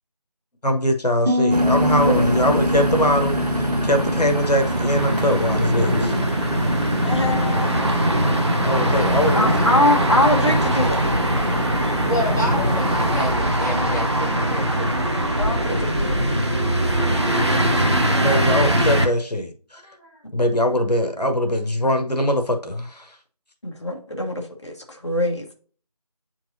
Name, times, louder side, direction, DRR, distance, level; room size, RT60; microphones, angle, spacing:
voice 1, 0.6-6.1 8.6-9.5 18.1-19.8 20.3-23.1, equal, 85° left, 5 dB, 1.2 m, -22 dB
Piano, 1.3-6.9, left 1 dB, 15° right, 1.9 m, -26 dB
sound 1, 1.5-13.4, right 1 dB, 80° right, 1.4 m, -25 dB
sound 2, 1.9-19.1, equal, 45° right, 1.1 m, -22 dB
voice 2, 7.0-8.0 9.3-11.0 15.4-16.2 18.2-18.6 23.6-25.4, left 1 dB, 45° left, 2 dB, 1.3 m, -23 dB
voice 3, 8.9-10.1 12.1-14.9 19.7-20.2, left 1 dB, 25° left, -4 dB, 1.3 m, -30 dB
7.8 x 4.6 x 2.7 m, 0.43 s
figure-of-eight pair, 170°, 20 cm